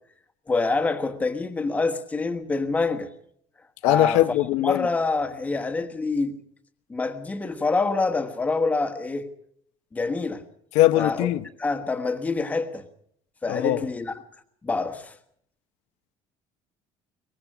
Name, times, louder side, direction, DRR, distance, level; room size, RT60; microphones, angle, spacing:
voice 1, 0.5-3.1 3.8-4.2 4.6-6.4 6.9-9.3 9.9-10.4 10.9-11.3 11.6-12.9 13.4-14.1 14.6-15.2, left 3 dB, 15° left, 1.3 m, -26 dB
voice 2, 3.8-4.9 10.7-11.4 13.5-13.8, left 15 dB, 80° left, 0.9 m, -21 dB
23.0 x 19.5 x 6.1 m
cardioid pair, 165°, 11 cm